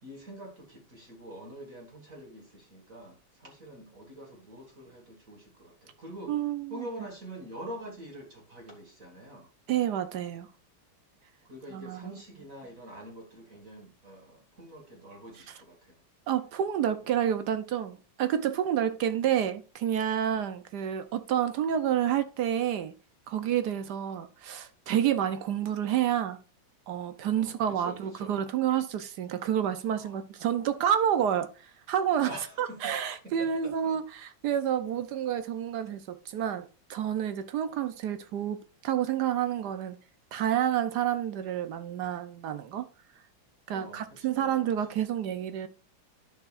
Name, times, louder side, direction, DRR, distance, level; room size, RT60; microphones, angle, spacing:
voice 1, 0.0-6.3 6.7-9.5 11.4-15.9 17.0-17.1 27.3-28.4 29.9-30.3 32.2-32.9 33.2-34.0 43.7-45.0, right 1 dB, 45° right, 2.2 m, -45 dB
voice 2, 6.3-6.9 9.7-10.5 11.7-12.2 16.3-22.9 23.3-26.4 26.9-32.3 32.6-40.0 40.3-42.9 43.7-45.7, right 10 dB, 65° right, 1.1 m, -29 dB
10.5 x 6.6 x 2.4 m
omnidirectional pair, 2.2 m